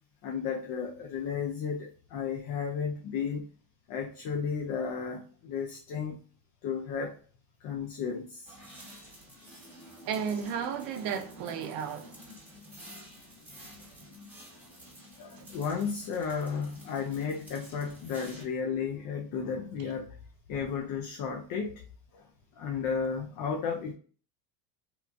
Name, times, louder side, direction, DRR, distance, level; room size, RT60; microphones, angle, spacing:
voice 1, 0.2-3.5 3.9-6.2 6.6-7.1 7.6-8.5 15.2-20.1 20.5-21.8 22.1-22.3 22.6-23.9, left 6 dB, 50° left, 0.5 m, -33 dB
sound 1, 8.4-18.4, equal, 5° right, 1.1 m, -50 dB
voice 2, 10.0-12.2, right 7 dB, 50° right, 0.6 m, -33 dB
3.0 x 2.4 x 2.3 m
cardioid pair, 125°, 45 cm